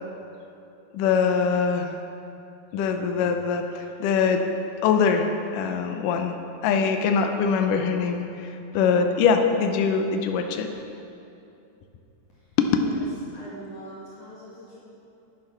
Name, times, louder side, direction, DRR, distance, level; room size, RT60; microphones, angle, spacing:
voice 1, 0.9-2.0 2.7-4.4 4.8-5.3 5.5-6.4 6.6-8.5 8.7-10.7 12.6-12.7, left 6 dB, 75° left, 5 dB, 2.1 m, -23 dB
voice 2, 13.3-14.8, equal, 55° left, -8 dB, 3.0 m, -43 dB
10.5 x 10.0 x 5.9 m, 2.7 s
omnidirectional pair, 4.5 m